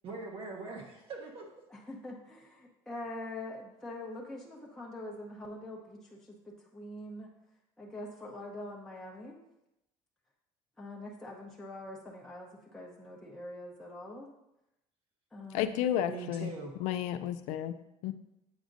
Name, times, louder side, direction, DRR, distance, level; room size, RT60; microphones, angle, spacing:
voice 1, 0.0-1.5 16.1-16.7, right 4 dB, 50° right, 0.9 m, -42 dB
voice 2, 1.7-7.3 7.8-9.4 10.8-14.3 15.3-16.0, left 1 dB, 5° left, 0.8 m, -44 dB
voice 3, 15.5-16.5 16.8-17.7 18.0-18.1, left 10 dB, 80° left, 0.4 m, -31 dB
7.9 x 5.0 x 2.5 m
cardioid pair, 115°, 12 cm